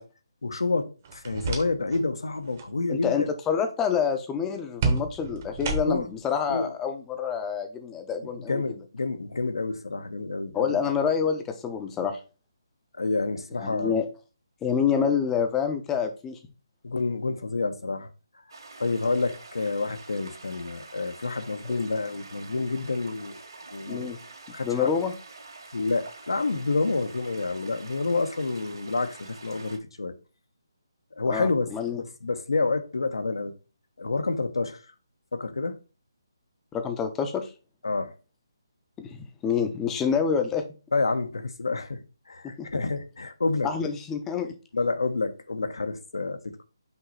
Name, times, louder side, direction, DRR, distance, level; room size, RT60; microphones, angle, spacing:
voice 1, 0.4-3.3 5.9-6.1 6.5-6.7 8.5-10.8 12.9-14.0 15.0-15.1 16.8-18.1 18.8-23.4 23.7-24.2 24.5-24.9 25.7-30.1 31.2-31.7 32.0-33.5 34.0-34.8 35.3-35.8 37.8-38.1 40.9-42.0 42.3-43.7 44.7-46.6, left 3 dB, 85° left, 1.0 m, -28 dB
sound 1, 1.0-2.1 2.4-2.7 4.8-6.2, right 3 dB, 30° right, 0.8 m, -30 dB
voice 2, 2.9-8.6 10.5-12.2 13.5-14.1 14.6-16.4 23.9-24.2 24.6-25.1 31.3-32.0 36.7-37.5 39.0-40.6 42.6-42.7 43.6-44.5, left 7 dB, 10° left, 0.5 m, -27 dB
sound 2, 18.5-29.8, right 3 dB, 70° right, 1.9 m, -46 dB
5.6 x 3.1 x 5.6 m
hypercardioid pair, 165°, 2 cm